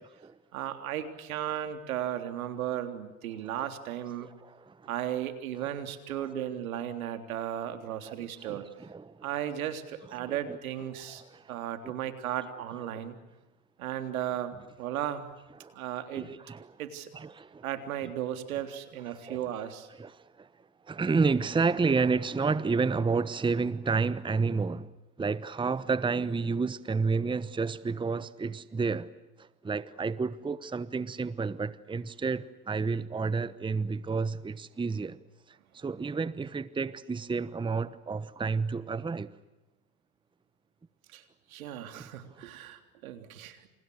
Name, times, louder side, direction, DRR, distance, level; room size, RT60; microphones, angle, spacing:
voice 1, 0.5-4.3 4.9-8.6 9.2-11.2 11.5-13.2 13.8-15.3 15.8-16.3 16.8-17.1 17.6-19.9 41.1-41.2 41.5-43.7, right 11 dB, 80° right, 3.5 m, -35 dB
voice 2, 4.2-4.9 5.7-5.8 6.1-6.3 8.0-9.3 10.2-10.6 11.0-11.6 11.8-11.9 12.9-13.0 15.6-15.8 16.1-16.8 17.1-17.6 19.1-19.4 19.9-20.5 20.9-24.9 25.2-29.1 29.4-35.2 35.5-39.3 42.0-42.1, right 4 dB, 10° right, 1.1 m, -31 dB
29.0 x 28.5 x 6.5 m
hypercardioid pair, 95°, 41 cm